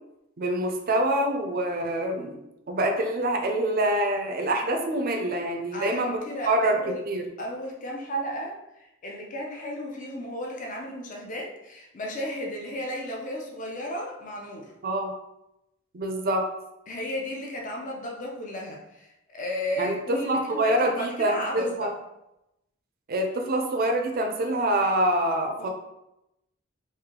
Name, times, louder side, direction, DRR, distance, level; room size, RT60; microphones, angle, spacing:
voice 1, 0.4-2.4 2.7-7.3 14.8-15.1 15.9-16.5 19.8-21.9 23.1-25.7, right 1 dB, 45° right, 4 dB, 0.5 m, -26 dB
voice 2, 5.7-7.0 7.4-14.7 16.9-19.1 19.3-21.9 25.6-25.7, equal, 40° left, -1 dB, 0.6 m, -34 dB
3.3 x 2.6 x 3.7 m, 0.89 s
head